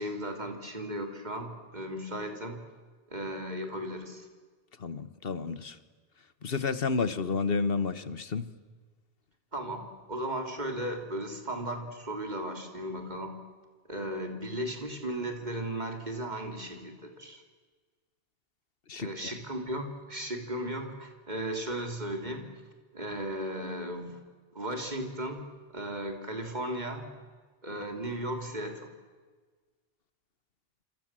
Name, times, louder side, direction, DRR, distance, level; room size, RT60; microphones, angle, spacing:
voice 1, 0.0-2.7 3.1-4.3 9.5-13.4 13.9-17.4 19.0-22.5 22.9-24.2 24.5-27.1 27.6-28.9, right 1 dB, 45° right, 3.6 m, -36 dB
voice 2, 4.8-5.8 6.4-8.5 18.9-19.3, left 4 dB, 65° left, 1.5 m, -31 dB
28.0 x 26.0 x 7.6 m
omnidirectional pair, 1.0 m